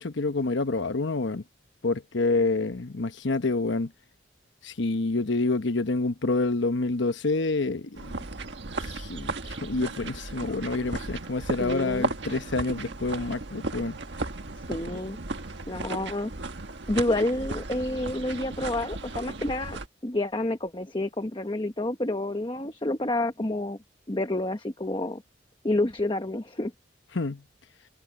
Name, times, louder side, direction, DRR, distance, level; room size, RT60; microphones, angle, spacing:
voice 1, 0.0-1.4 1.8-3.9 4.6-8.2 8.8-14.0 27.1-27.4, left 3 dB, 75° left, 1.0 m, -28 dB
sound 1, 7.9-19.9, right 3 dB, 70° right, 1.5 m, -35 dB
voice 2, 11.6-12.1 14.7-15.2 15.7-16.3 16.9-23.8 24.1-25.2 25.6-26.7, left 1 dB, 25° left, 1.1 m, -29 dB
head